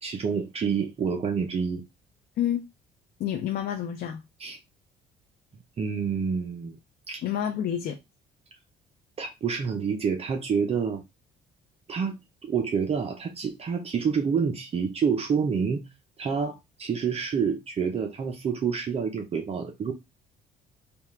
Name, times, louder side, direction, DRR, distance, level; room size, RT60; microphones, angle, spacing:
voice 1, 0.0-1.8 4.4-4.6 5.8-6.8 7.1-7.2 9.2-11.0 11.9-12.2 12.4-15.9 16.2-19.9, right 6 dB, 35° right, 0.7 m, -28 dB
voice 2, 3.2-4.2 7.2-8.0, left 10 dB, 60° left, 0.7 m, -28 dB
3.5 x 2.4 x 4.4 m
cardioid pair, 110°, 17 cm